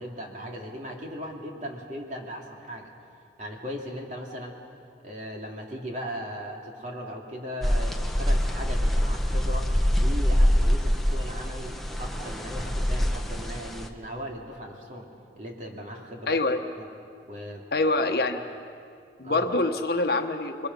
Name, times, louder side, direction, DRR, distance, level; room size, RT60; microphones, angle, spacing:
voice 1, 0.0-2.9 3.4-4.6 5.0-9.7 10.0-15.1 15.4-16.4 16.8-16.9 17.2-17.7 18.4-18.5 19.2-19.5, equal, 40° right, 0 dB, 2.8 m, -38 dB
sound 1, 7.6-13.9, equal, ahead, 1.0 m, -25 dB
voice 2, 16.3-16.6 17.7-18.4 19.2-20.7, left 2 dB, 55° left, 5 dB, 1.2 m, -25 dB
27.0 x 22.0 x 5.5 m, 2.3 s
head